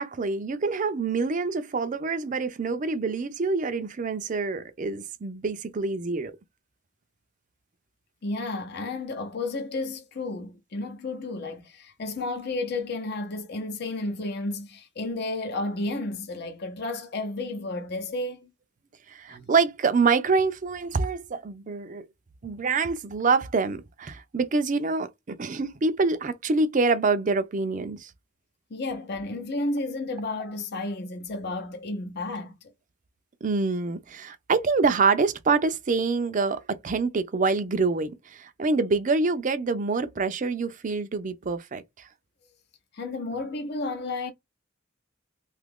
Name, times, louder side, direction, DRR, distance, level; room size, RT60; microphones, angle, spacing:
voice 1, 0.0-6.3 19.1-22.1 22.4-28.1 33.4-42.1, right 4 dB, 40° right, 0.4 m, -26 dB
voice 2, 8.2-18.5 19.3-19.4 28.7-32.5 42.9-44.3, left 2 dB, 50° left, 0.7 m, -32 dB
2.8 x 2.4 x 3.5 m
head